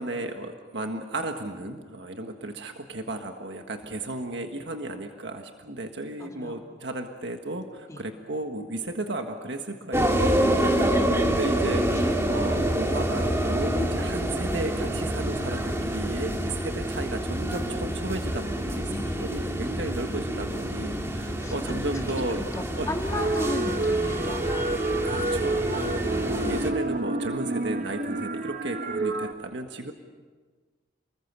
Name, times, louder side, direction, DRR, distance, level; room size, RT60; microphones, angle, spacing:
voice 1, 0.0-22.4 22.8-22.9 25.0-29.9, right 2 dB, 70° right, 5 dB, 1.6 m, -34 dB
voice 2, 6.2-6.6 7.9-8.0 10.8-11.2 12.0-12.1 18.9-19.4 21.4-21.8 22.5-24.7 25.9-26.1, left 1 dB, 15° left, 2 dB, 2.1 m, -35 dB
sound 1, 9.9-26.7, right 1 dB, 15° right, 2.3 m, -27 dB
sound 2, 23.1-29.3, right 2 dB, 50° right, 1.1 m, -29 dB
30.0 x 20.5 x 6.8 m, 1.4 s
head